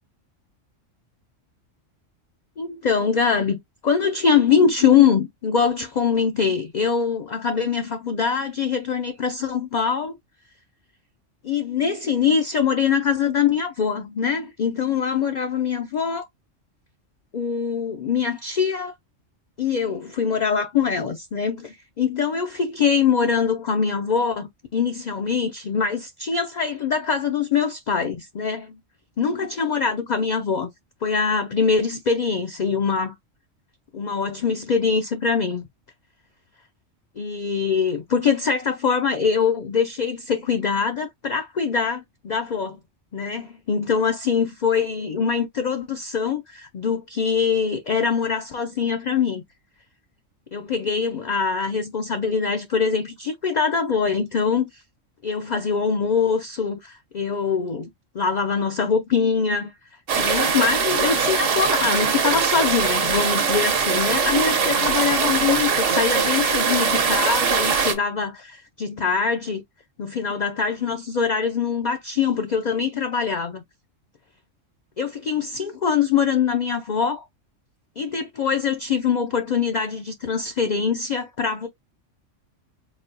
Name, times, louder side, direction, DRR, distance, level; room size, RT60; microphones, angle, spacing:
voice 1, 2.6-10.2 11.4-16.3 17.3-18.9 19.6-28.8 29.2-30.7 31.0-33.2 33.9-35.7 37.2-42.8 43.1-49.4 50.5-54.8 55.2-57.9 58.1-59.7 60.2-69.6 70.0-73.6 75.0-77.2 78.0-81.7, left 6 dB, 50° left, 0.5 m, -23 dB
sound 1, 60.1-67.9, right 5 dB, 70° right, 1.3 m, -21 dB
4.1 x 2.1 x 3.8 m
omnidirectional pair, 1.3 m